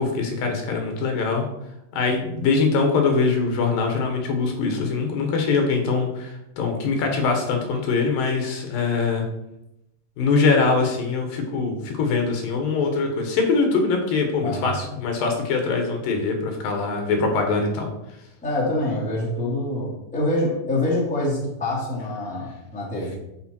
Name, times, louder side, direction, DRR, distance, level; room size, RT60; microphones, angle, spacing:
voice 1, 0.0-1.5 1.9-9.2 10.2-17.9, left 4 dB, 80° left, 3 dB, 3.1 m, -23 dB
voice 2, 14.4-14.7 18.4-23.2, left 1 dB, 5° left, -5 dB, 2.0 m, -25 dB
9.8 x 5.5 x 4.5 m, 0.87 s
omnidirectional pair, 4.0 m